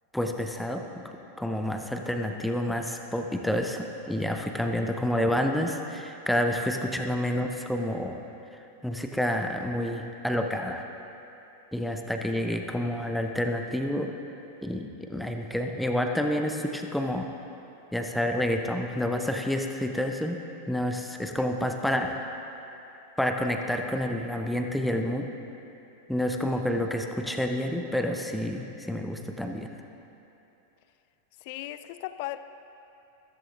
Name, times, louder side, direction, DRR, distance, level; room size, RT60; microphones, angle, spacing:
voice 1, 0.1-0.8 1.4-8.2 8.8-10.9 11.7-14.1 14.6-17.3 17.9-20.4 20.7-22.2 23.2-25.2 26.1-29.7, left 1 dB, ahead, 4 dB, 0.7 m, -29 dB
voice 2, 31.4-32.4, left 15 dB, 50° left, 13 dB, 0.4 m, -37 dB
14.0 x 14.0 x 2.6 m, 2.9 s
figure-of-eight pair, 90°, 0 cm